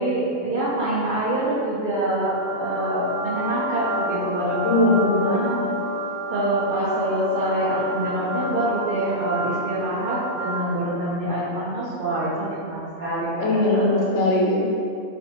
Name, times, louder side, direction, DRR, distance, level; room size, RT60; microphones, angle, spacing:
voice 1, 0.0-5.6 6.3-14.0, right 1 dB, 65° right, -11 dB, 0.5 m, -26 dB
sound 1, 2.2-11.0, right 1 dB, 35° left, 0.8 m, -30 dB
voice 2, 4.6-5.5 13.4-14.8, left 2 dB, 90° left, -3 dB, 1.0 m, -20 dB
2.5 x 2.1 x 2.8 m, 2.4 s
omnidirectional pair, 1.3 m